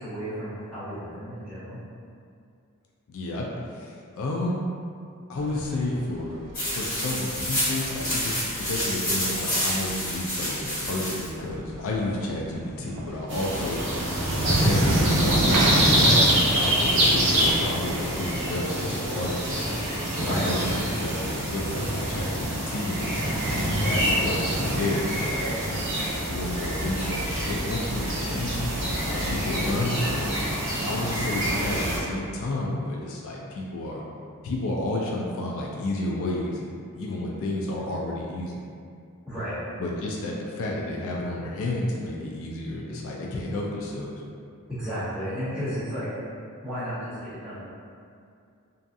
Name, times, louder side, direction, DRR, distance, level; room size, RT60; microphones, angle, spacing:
voice 1, 0.0-1.8 20.2-20.5 39.3-39.6 44.7-46.1 46.6-47.7, equal, 5° right, -15 dB, 1.0 m, -33 dB
voice 2, 3.1-4.6 5.3-6.4 6.7-13.8 14.4-19.7 20.2-20.6 20.9-23.2 23.6-25.9 26.3-28.7 29.0-30.3 30.8-34.0 34.4-38.6 39.8-44.1, left 1 dB, 65° left, -2 dB, 0.3 m, -31 dB
sound 1, 5.4-19.3, right 2 dB, 85° right, 0.3 m, -38 dB
sound 2, 6.5-11.3, equal, 40° left, 1.0 m, -28 dB
sound 3, 13.3-32.0, right 1 dB, 55° right, 0.6 m, -25 dB
2.6 x 2.3 x 2.5 m, 2.4 s
head